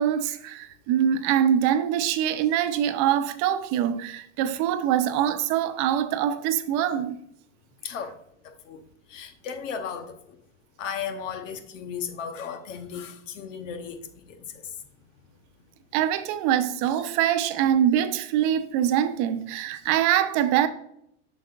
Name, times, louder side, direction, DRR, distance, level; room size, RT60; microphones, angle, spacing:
voice 1, 0.0-7.2 15.9-20.7, right 10 dB, 50° right, 0.7 m, -24 dB
voice 2, 7.8-8.2 8.4-8.8 9.1-10.4 10.8-14.0 14.2-14.5, left 7 dB, 80° left, 1.1 m, -35 dB
7.3 x 6.3 x 2.5 m
supercardioid pair, 110°, 37 cm